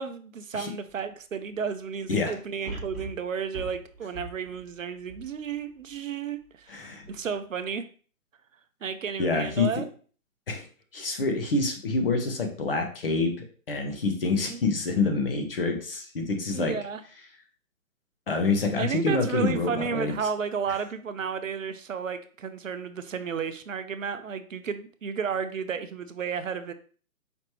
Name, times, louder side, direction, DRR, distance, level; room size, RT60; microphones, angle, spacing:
voice 1, 0.0-7.8 8.8-9.8 14.5-14.6 16.5-17.0 18.8-26.7, right 6 dB, 60° right, 10 dB, 0.5 m, -32 dB
sound 1, 0.9-1.0 2.6-6.0 6.5-6.6, right 2 dB, ahead, 0.7 m, -41 dB
voice 2, 6.7-7.1 9.2-9.8 10.5-10.6 10.9-16.7 18.3-20.1, left 3 dB, 40° left, 4 dB, 0.8 m, -27 dB
5.0 x 3.2 x 2.9 m, 0.42 s
figure-of-eight pair, 145°, 44 cm